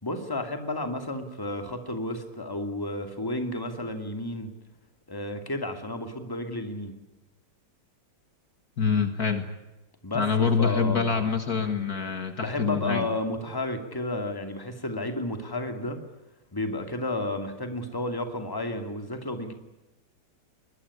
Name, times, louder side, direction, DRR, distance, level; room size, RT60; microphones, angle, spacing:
voice 1, 0.0-4.5 5.1-6.9 10.0-11.3 12.4-16.0 16.5-19.5, left 1 dB, 10° left, 7 dB, 2.5 m, -32 dB
voice 2, 8.8-9.4 10.1-13.1, left 5 dB, 55° left, 8 dB, 2.2 m, -25 dB
23.0 x 21.0 x 9.8 m, 1.0 s
omnidirectional pair, 2.0 m